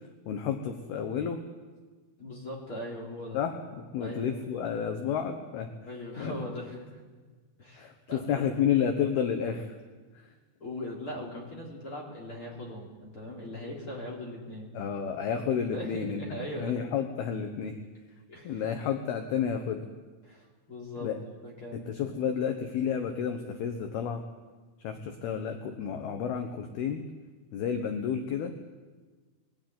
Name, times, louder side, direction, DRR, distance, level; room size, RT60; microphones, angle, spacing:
voice 1, 0.3-1.4 3.3-5.7 6.2-6.4 7.8-9.8 10.1-10.3 14.7-17.8 18.4-19.8 21.0-21.2 21.7-24.2 24.8-27.1 27.5-28.5, left 7 dB, 70° left, 6 dB, 2.7 m, -31 dB
voice 2, 2.2-3.4 4.0-4.4 5.9-7.0 7.6-8.5 10.6-14.8 15.7-16.9 18.3-18.6 20.2-21.1 21.4-22.2, left 1 dB, 30° left, -2 dB, 3.7 m, -40 dB
21.5 x 16.5 x 9.5 m, 1.4 s
omnidirectional pair, 5.6 m